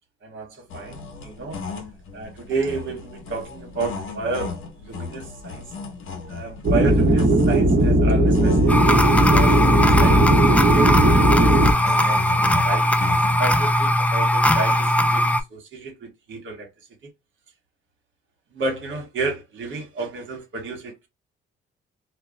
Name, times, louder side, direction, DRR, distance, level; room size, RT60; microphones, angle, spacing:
voice 1, 0.2-1.7 2.1-5.6 6.3-12.4 12.6-12.9 13.4-16.7 18.5-21.1, right 3 dB, 70° right, 1.2 m, -31 dB
sound 1, 0.7-13.4, left 5 dB, 80° left, 0.7 m, -36 dB
sound 2, 6.6-11.7, right 1 dB, 45° right, 1.0 m, -17 dB
sound 3, 8.7-15.4, left 1 dB, 5° left, 0.3 m, -19 dB
2.2 x 2.0 x 3.7 m
cardioid pair, 80°, 21 cm